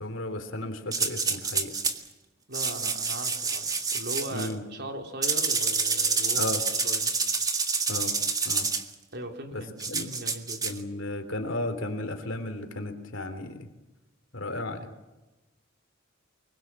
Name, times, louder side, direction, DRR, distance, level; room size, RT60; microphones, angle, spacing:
voice 1, 0.0-1.7 4.3-4.6 6.3-6.6 7.9-8.1 8.5-8.7 9.5-10.1 10.6-13.7 14.3-14.9, left 1 dB, 70° left, 8 dB, 3.4 m, -34 dB
sound 1, 0.9-2.0 2.5-4.5 5.2-8.8 9.8-10.8, right 4 dB, 20° right, 1.8 m, -28 dB
voice 2, 2.5-6.5 6.7-7.1 9.1-10.8, right 1 dB, 60° right, 4 dB, 3.8 m, -39 dB
24.5 x 22.5 x 7.7 m, 1.1 s
head